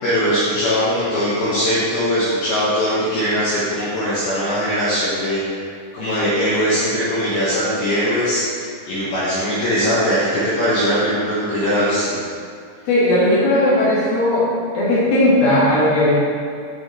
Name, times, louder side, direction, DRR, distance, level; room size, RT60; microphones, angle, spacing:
voice 1, 0.0-5.4 5.9-12.2, equal, 80° left, -10 dB, 2.2 m, -20 dB
voice 2, 12.9-14.5 14.7-16.1, left 1 dB, 60° left, -9 dB, 2.5 m, -16 dB
9.0 x 3.5 x 3.9 m, 2.2 s
omnidirectional pair, 5.9 m